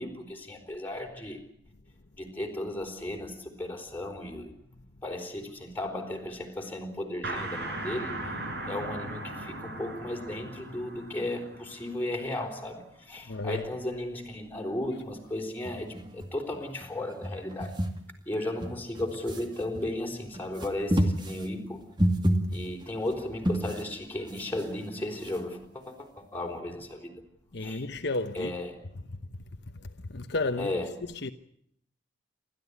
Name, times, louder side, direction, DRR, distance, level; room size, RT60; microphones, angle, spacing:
voice 1, 0.0-1.4 2.2-4.5 5.0-8.4 8.7-17.8 18.3-21.8 22.5-27.2 27.6-27.8 28.3-28.9 30.6-31.1, left 1 dB, 10° left, 4.3 m, -35 dB
sound 1, 7.2-12.7, right 2 dB, 60° right, 6.4 m, -38 dB
voice 2, 13.3-13.6 27.5-28.5 29.1-29.2 29.7-30.7 31.2-31.3, left 2 dB, 60° left, 1.0 m, -32 dB
sound 2, 15.6-16.9 17.1-18.0 18.5-19.9 20.3-23.9 24.3-25.5, equal, 25° right, 2.2 m, -30 dB
28.5 x 13.5 x 9.7 m
head